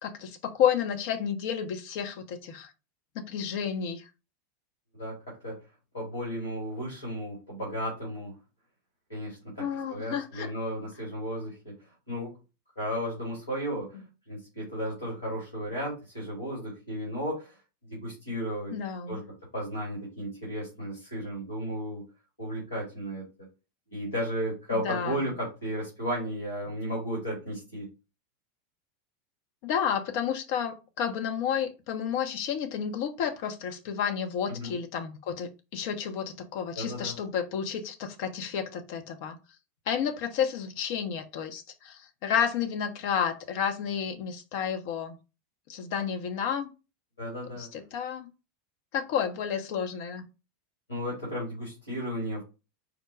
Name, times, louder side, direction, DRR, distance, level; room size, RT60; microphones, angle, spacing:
voice 1, 0.0-2.7 3.1-4.1 9.6-10.5 13.9-14.0 18.7-19.2 24.7-25.2 29.6-39.4 39.9-45.1 45.7-46.7 47.6-48.3 48.9-50.2, left 8 dB, 55° left, 0.8 m, -31 dB
voice 2, 5.9-8.3 9.1-11.7 12.1-12.3 12.8-14.0 14.3-17.6 17.8-18.8 19.1-19.2 19.5-22.0 22.4-23.3 23.9-27.9 34.5-34.7 36.8-37.2 47.2-47.7 50.9-52.4, equal, 85° left, 2.6 m, -34 dB
5.1 x 2.2 x 4.6 m
figure-of-eight pair, 85°, 0 cm